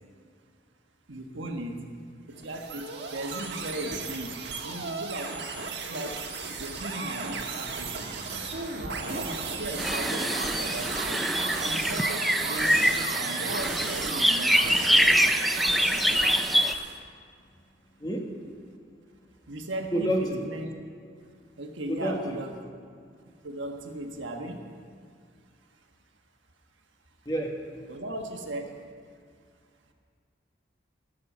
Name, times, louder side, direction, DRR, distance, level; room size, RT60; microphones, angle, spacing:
voice 1, 1.1-1.8 2.3-5.5 5.8-8.2 8.8-11.2 11.6-12.8 13.2-14.8 19.5-20.7 21.6-22.5 23.4-24.6 25.7-25.8 27.9-28.8, right 1 dB, 80° right, 3 dB, 1.3 m, -37 dB
sound 1, 2.3-17.0, right 4 dB, 60° right, 1.4 m, -34 dB
sound 2, 9.8-16.7, equal, ahead, 0.3 m, -25 dB
voice 2, 19.9-20.4 21.9-22.4 27.2-27.6, equal, 20° left, 0 dB, 1.4 m, -28 dB
16.5 x 6.6 x 7.4 m, 2.2 s
head